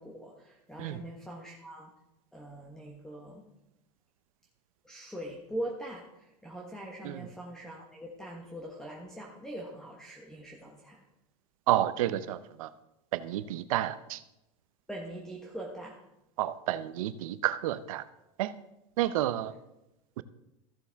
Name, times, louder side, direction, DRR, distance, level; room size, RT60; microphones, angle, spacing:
voice 1, 0.0-1.9 2.3-3.4 4.8-11.0 14.9-16.0, right 1 dB, 5° left, -1 dB, 1.2 m, -42 dB
voice 2, 11.7-12.7 13.1-14.2 16.4-18.0 18.4-18.5 19.0-19.5 20.2-20.3, right 13 dB, 75° right, 14 dB, 0.7 m, -30 dB
14.5 x 6.9 x 3.5 m, 0.90 s
supercardioid pair, 130°, 18 cm